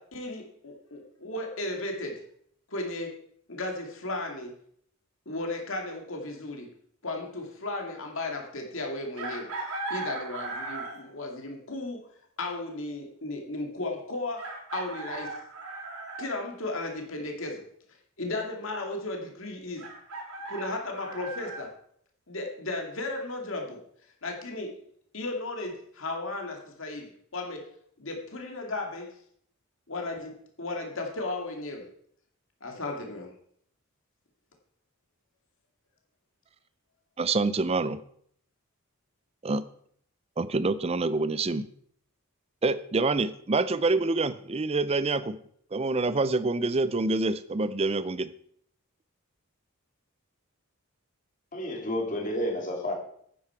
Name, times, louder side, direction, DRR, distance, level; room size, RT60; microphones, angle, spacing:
voice 1, 0.0-2.2 2.7-3.2 3.5-4.6 5.3-6.7 7.0-9.5 9.9-12.0 12.4-15.4 16.2-17.6 18.2-19.8 20.5-21.7 22.3-23.8 24.2-24.7 25.1-27.6 28.0-29.1 29.9-31.9 32.6-33.3, left 2 dB, 60° left, 2 dB, 2.3 m, -35 dB
Chicken rooster, 9.2-11.1 12.8-12.9 14.4-16.3 19.8-21.6, right 2 dB, 80° right, 2.9 m, -37 dB
voice 2, 37.2-38.0 39.4-39.6 40.4-41.7 42.6-45.4 45.7-48.3, right 3 dB, 25° right, 14 dB, 0.5 m, -26 dB
voice 3, 51.5-52.9, equal, 35° left, 0 dB, 2.6 m, -30 dB
10.5 x 9.4 x 4.5 m, 0.64 s
head